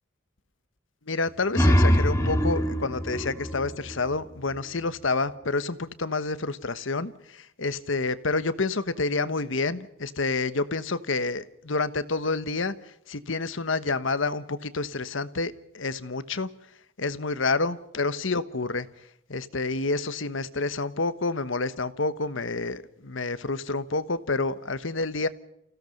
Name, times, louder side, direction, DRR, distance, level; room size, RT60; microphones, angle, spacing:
voice 1, 1.1-16.5 17.0-18.9 19.3-25.3, left 3 dB, 75° left, 13 dB, 1.2 m, -29 dB
sound 1, 1.3-4.7, equal, 15° left, 2.1 m, -24 dB
29.0 x 16.5 x 5.4 m, 0.74 s
head